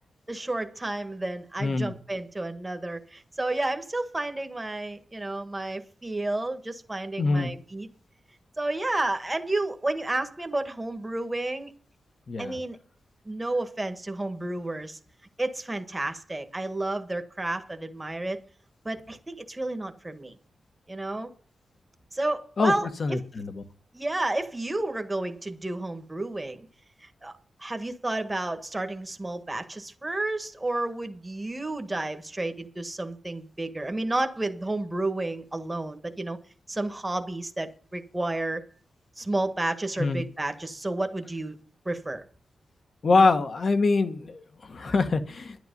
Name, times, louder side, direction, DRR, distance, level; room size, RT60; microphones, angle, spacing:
voice 1, 0.3-7.9 8.6-11.7 12.4-12.8 13.2-15.0 15.4-18.4 18.8-20.3 20.9-21.3 22.1-22.9 23.9-26.7 27.2-36.4 36.7-38.6 39.2-41.6 41.8-42.2, right 2 dB, 15° right, 1.5 m, -31 dB
voice 2, 1.6-1.9 7.2-7.5 12.3-12.5 22.6-22.7 23.0-23.6 40.0-40.2 43.0-45.6, left 3 dB, 45° left, 1.5 m, -24 dB
11.5 x 11.0 x 5.4 m
wide cardioid pair, 135°, 0 cm